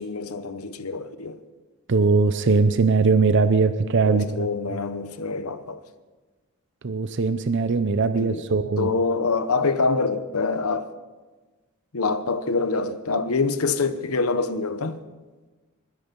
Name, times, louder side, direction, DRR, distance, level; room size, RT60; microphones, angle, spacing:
voice 1, 0.0-1.4 4.0-5.8 8.1-8.4 8.8-10.9 11.9-15.0, left 4 dB, 80° left, 1.0 m, -25 dB
voice 2, 1.9-4.5 6.8-8.9, right 4 dB, 55° right, 0.6 m, -20 dB
21.0 x 10.0 x 5.3 m
head